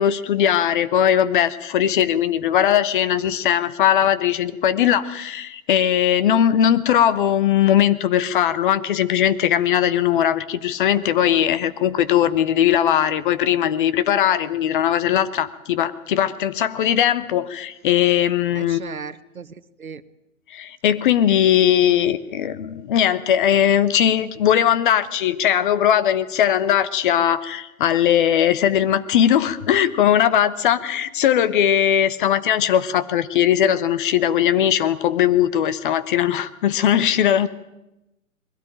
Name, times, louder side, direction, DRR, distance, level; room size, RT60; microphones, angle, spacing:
voice 1, 0.0-18.8 20.5-37.5, left 10 dB, 35° left, 14 dB, 1.0 m, -19 dB
voice 2, 18.5-20.0, right 6 dB, 75° right, 14 dB, 1.1 m, -36 dB
21.5 x 16.5 x 9.1 m, 0.91 s
figure-of-eight pair, 115°, 42 cm